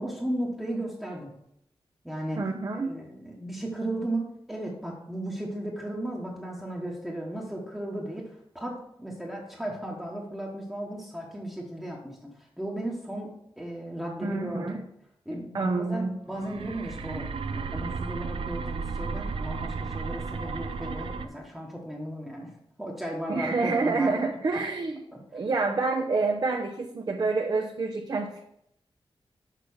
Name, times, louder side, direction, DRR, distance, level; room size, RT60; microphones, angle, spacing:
voice 1, 0.0-1.3 2.0-2.4 2.8-14.8 15.2-22.5 22.8-24.1 24.5-24.6 25.1-25.2, right 1 dB, 5° right, -3 dB, 1.2 m, -35 dB
voice 2, 2.4-2.9 14.2-14.8 15.5-16.1 23.3-25.0 25.3-28.4, right 3 dB, 45° right, 1 dB, 0.8 m, -27 dB
sound 1, 16.3-21.3, right 4 dB, 80° right, 0.6 m, -34 dB
6.6 x 5.0 x 7.0 m, 0.75 s
wide cardioid pair, 180°, 9 cm